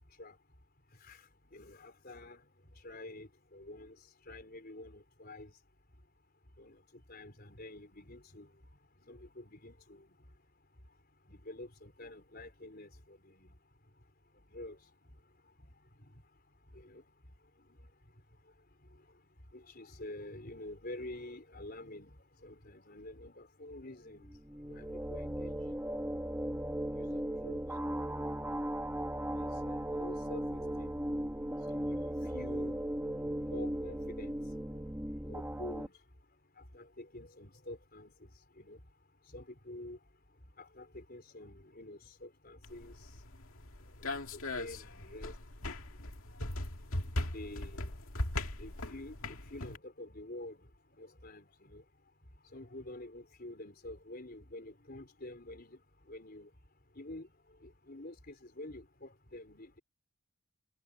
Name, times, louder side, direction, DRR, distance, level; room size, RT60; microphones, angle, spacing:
voice 1, 1.5-2.4 2.8-4.0 4.3-5.5 6.6-6.8 7.1-8.5 9.1-10.0 11.3-13.5 14.5-14.8 16.7-17.0 19.5-22.1 22.4-24.3 24.7-25.8 26.9-27.6 29.4-30.4 30.8-30.9 31.7-32.8 33.5-34.3 35.3-35.9 36.7-38.1 38.6-38.8 39.3-40.0 40.6-42.9 44.0-44.1 44.5-45.3 47.3-47.9 48.6-50.6 51.0-51.8 52.5-55.8 56.1-56.5 57.0-57.3 57.6-59.8, left 1 dB, 45° left, 4.3 m, -48 dB
sound 1, 24.3-35.9, right 1 dB, 10° right, 1.2 m, -37 dB
sound 2, 42.6-49.8, left 1 dB, 65° left, 2.3 m, -39 dB
head